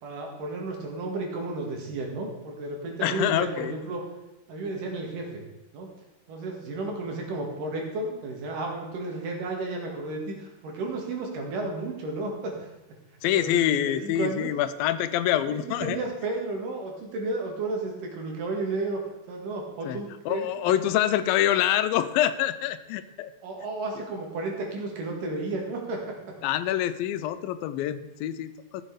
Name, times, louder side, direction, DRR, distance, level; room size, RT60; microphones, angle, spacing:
voice 1, 0.0-4.0 4.5-5.4 5.7-5.9 6.3-12.7 13.3-14.5 15.5-19.0 19.3-20.8 23.4-26.2, right 2 dB, 70° right, 1 dB, 3.5 m, -33 dB
voice 2, 3.0-3.7 13.2-16.0 19.9-20.0 20.3-23.3 26.4-28.8, left 12 dB, 90° left, 12 dB, 2.4 m, -26 dB
14.5 x 7.4 x 4.8 m, 1.0 s
omnidirectional pair, 4.1 m